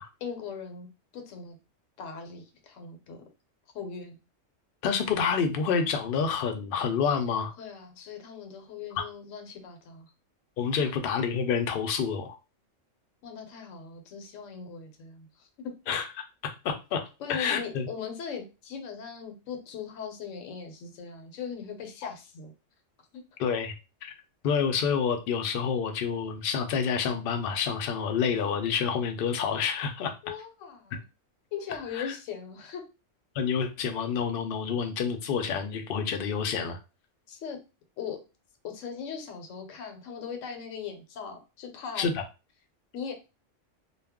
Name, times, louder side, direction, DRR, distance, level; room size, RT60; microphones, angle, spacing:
voice 1, 0.2-0.9 1.1-1.6 2.0-3.2 3.7-4.2 7.6-10.1 10.8-11.0 13.2-15.7 17.2-22.5 23.1-23.2 30.2-31.0 31.5-32.8 37.3-37.6 38.0-38.2 38.6-42.1 42.9-43.1, left 6 dB, 80° left, 5 dB, 1.0 m, -39 dB
voice 2, 4.8-7.5 8.9-9.0 10.6-12.4 15.9-17.0 17.3-17.9 22.0-22.1 23.4-23.7 24.0-24.1 24.4-30.1 31.9-32.1 33.3-36.8 42.0-42.2, left 6 dB, 60° left, 6 dB, 0.6 m, -28 dB
2.3 x 2.1 x 3.5 m, 0.29 s
omnidirectional pair, 1.3 m